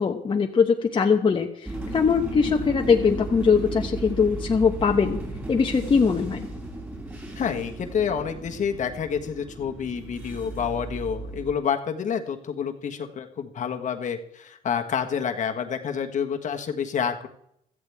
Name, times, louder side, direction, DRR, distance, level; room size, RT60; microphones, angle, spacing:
voice 1, 0.0-5.2 5.5-6.5, left 5 dB, 30° left, 2 dB, 1.1 m, -21 dB
sound 1, 1.6-11.5, right 2 dB, 10° right, 4.8 m, -35 dB
voice 2, 7.3-17.3, left 7 dB, 45° left, 5 dB, 1.4 m, -28 dB
16.5 x 13.5 x 3.5 m, 0.75 s
cardioid pair, 110°, 17 cm